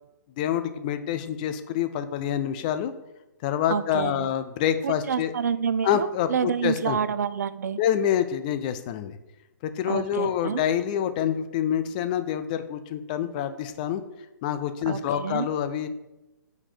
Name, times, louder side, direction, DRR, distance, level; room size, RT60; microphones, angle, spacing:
voice 1, 0.4-2.9 3.4-5.3 5.8-7.0 7.8-9.2 9.6-14.0 14.4-15.9, left 10 dB, 25° left, 11 dB, 0.4 m, -27 dB
voice 2, 3.7-4.3 4.8-7.8 9.9-10.6 14.9-15.5, right 7 dB, 55° right, 15 dB, 0.4 m, -28 dB
4.8 x 4.2 x 4.9 m, 0.96 s
figure-of-eight pair, 130°, 11 cm